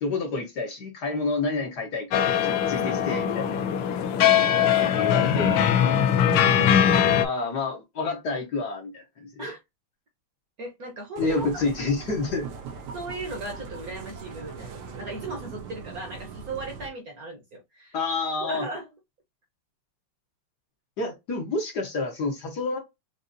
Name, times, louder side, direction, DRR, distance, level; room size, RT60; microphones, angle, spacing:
voice 1, 0.0-3.6 4.8-5.6 7.2-9.5 11.2-12.5 17.9-18.6 21.0-22.8, left 3 dB, 55° left, 1.4 m, -29 dB
sound 1, 2.1-7.3, left 9 dB, 80° left, 1.5 m, -21 dB
voice 2, 2.6-2.9 4.3-5.0 6.1-6.6 9.4-9.6 10.6-11.5 12.9-17.9 18.4-18.9, right 2 dB, 50° right, 1.3 m, -37 dB
sound 2, 11.2-16.9, right 5 dB, 90° right, 1.8 m, -40 dB
5.2 x 2.6 x 2.6 m
omnidirectional pair, 2.4 m